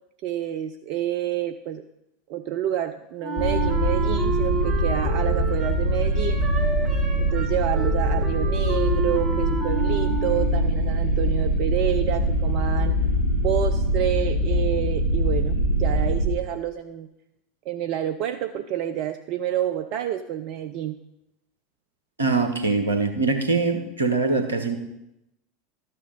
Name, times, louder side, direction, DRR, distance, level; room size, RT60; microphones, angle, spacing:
voice 1, 0.2-1.8 2.3-6.4 7.2-13.0 13.4-17.1 17.7-20.9, right 11 dB, 50° right, 8 dB, 0.5 m, -28 dB
Wind instrument woodwind instrument, 3.2-10.8, right 3 dB, 30° right, 1.7 m, -31 dB
sound 1, 3.4-16.3, right 1 dB, 50° left, 2.8 m, -23 dB
voice 2, 22.2-24.8, right 4 dB, 75° right, 7 dB, 1.3 m, -23 dB
12.5 x 6.6 x 5.4 m, 0.86 s
figure-of-eight pair, 80°, 0 cm